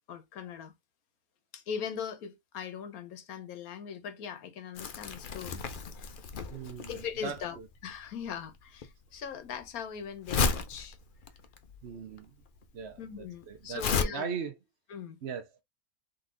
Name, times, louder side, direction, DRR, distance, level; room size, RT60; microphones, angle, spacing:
voice 1, 0.1-0.7 1.5-5.6 6.9-7.6 7.8-11.0 13.0-14.3 14.9-15.2, left 7 dB, 80° left, 1.3 m, -40 dB
Crumpling crinkling, 4.7-14.0, left 5 dB, 55° left, 0.6 m, -34 dB
voice 2, 6.5-7.7 11.8-12.3 12.7-14.6 15.2-15.6, right 6 dB, 55° right, 0.9 m, -39 dB
3.9 x 3.1 x 3.7 m
omnidirectional pair, 1.5 m